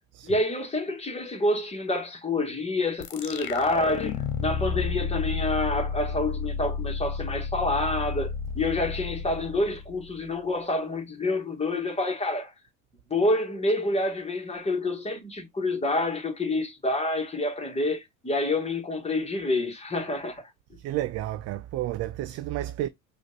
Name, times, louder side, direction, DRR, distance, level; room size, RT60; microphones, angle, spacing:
voice 1, 0.2-12.5 13.1-20.4, left 2 dB, 15° left, 1.7 m, -28 dB
sound 1, 3.0-10.3, left 6 dB, 60° left, 0.9 m, -31 dB
voice 2, 20.8-22.9, right 14 dB, 45° right, 0.4 m, -31 dB
4.9 x 2.6 x 2.5 m
hypercardioid pair, 80°, 36 cm